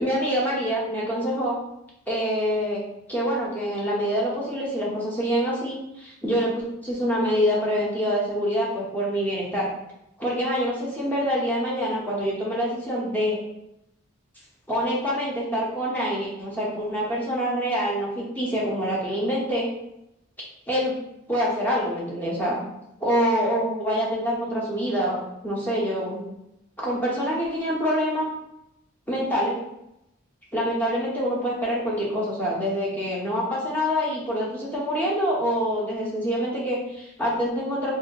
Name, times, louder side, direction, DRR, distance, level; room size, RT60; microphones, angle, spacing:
voice 1, 0.0-1.6 2.1-2.8 3.1-9.7 10.2-13.4 14.7-19.7 20.7-20.9 21.3-22.6 23.0-26.2 26.8-28.3 29.1-29.6 30.5-37.9, equal, 10° left, -6 dB, 0.8 m, -26 dB
2.6 x 2.0 x 3.9 m, 0.85 s
head